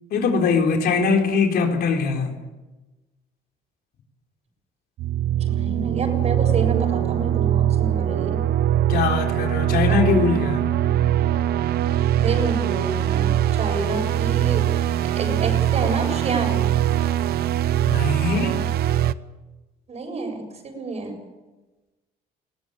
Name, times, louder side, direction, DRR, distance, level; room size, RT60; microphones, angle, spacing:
voice 1, 0.1-2.3 8.9-10.6 17.8-18.6, left 5 dB, 65° left, 3 dB, 3.8 m, -21 dB
sound 1, 5.0-19.1, right 11 dB, 70° right, 0.8 m, -22 dB
voice 2, 5.4-8.4 9.9-10.0 12.2-13.2 13.6-14.6 15.2-16.6 19.9-21.1, right 3 dB, 40° right, 4 dB, 7.3 m, -29 dB
21.5 x 17.5 x 8.8 m, 1.1 s
cardioid pair, 110°, 17 cm